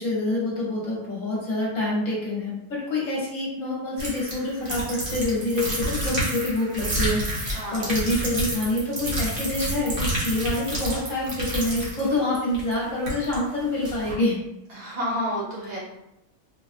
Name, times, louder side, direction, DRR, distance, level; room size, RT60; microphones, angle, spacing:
voice 1, 0.0-14.4, left 2 dB, 60° left, -5 dB, 1.3 m, -27 dB
sound 1, 4.0-13.4 13.8-14.2, right 1 dB, 40° right, 1.0 m, -29 dB
voice 2, 7.5-7.9 14.7-15.8, equal, 70° right, -6 dB, 1.7 m, -30 dB
4.1 x 2.4 x 2.5 m, 0.88 s
omnidirectional pair, 1.6 m